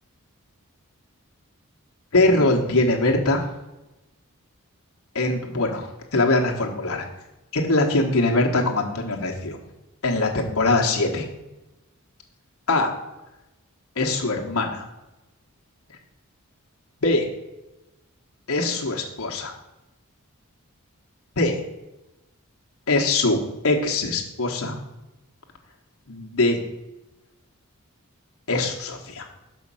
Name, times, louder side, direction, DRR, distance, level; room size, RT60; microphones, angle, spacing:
voice 1, 2.1-3.4 5.1-7.1 7.5-9.6 10.0-11.3 12.7-12.9 14.0-14.8 17.0-17.3 18.5-19.5 21.4-21.6 22.9-23.4 23.6-24.8 26.1-26.6 28.5-29.3, left 2 dB, 70° left, 1 dB, 1.2 m, -22 dB
6.2 x 5.5 x 5.5 m, 1.0 s
head